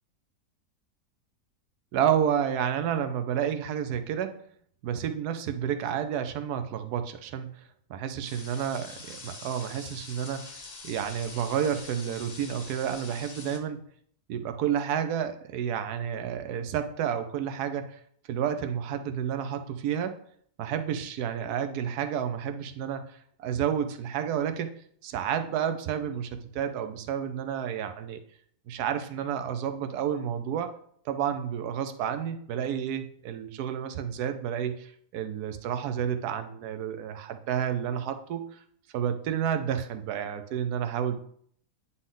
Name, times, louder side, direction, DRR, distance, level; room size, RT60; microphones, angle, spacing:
voice 1, 1.9-4.4 4.8-7.6 7.9-10.6 10.8-13.8 14.3-18.0 18.3-20.2 20.6-24.7 25.0-28.2 28.7-30.7 31.0-38.6 38.9-41.2, right 9 dB, 75° right, 8 dB, 1.2 m, -30 dB
sound 1, 8.2-13.6, left 3 dB, 35° left, 0.6 m, -45 dB
9.3 x 4.2 x 3.8 m, 0.62 s
omnidirectional pair, 1.7 m